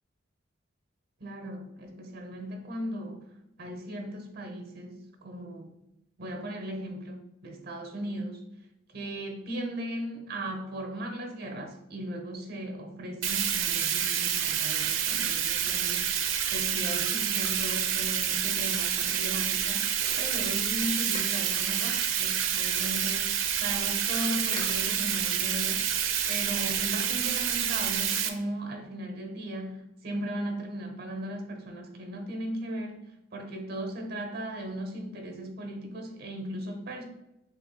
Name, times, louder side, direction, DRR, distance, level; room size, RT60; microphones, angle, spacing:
voice 1, 1.2-3.3 3.6-5.7 6.2-8.4 8.9-25.9 26.3-33.0 33.3-37.0, right 1 dB, 55° right, 4 dB, 0.8 m, -37 dB
Bathtub (filling or washing), 13.2-28.3, right 9 dB, 90° right, 0.5 m, -28 dB
sound 1, 20.0-21.6 22.7-23.2 23.7-23.8 23.9-24.2 24.5-25.1 25.8-26.3 26.8-27.6 28.0-28.4, left 2 dB, 25° left, 0.7 m, -47 dB
6.9 x 2.9 x 2.3 m, 0.87 s
head